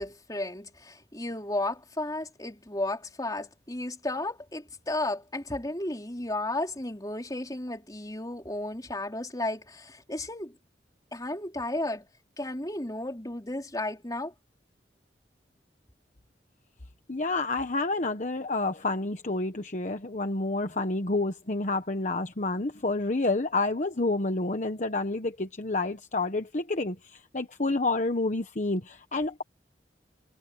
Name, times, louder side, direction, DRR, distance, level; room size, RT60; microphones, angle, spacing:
voice 1, 0.0-10.6 11.1-12.1 12.4-14.3, left 2 dB, 20° left, 4.1 m, -33 dB
voice 2, 17.1-29.4, left 2 dB, 45° left, 1.1 m, -29 dB
head